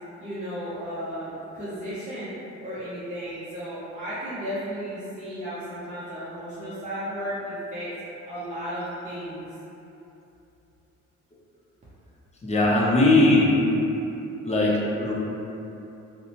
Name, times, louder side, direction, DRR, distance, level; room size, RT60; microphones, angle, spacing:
voice 1, 0.2-2.3 2.6-7.9 8.2-9.4, equal, 25° right, -11 dB, 0.6 m, -34 dB
voice 2, 12.4-13.5 14.4-15.1, left 2 dB, 20° left, -5 dB, 0.5 m, -19 dB
2.6 x 2.1 x 2.9 m, 2.9 s
cardioid pair, 90°, 30 cm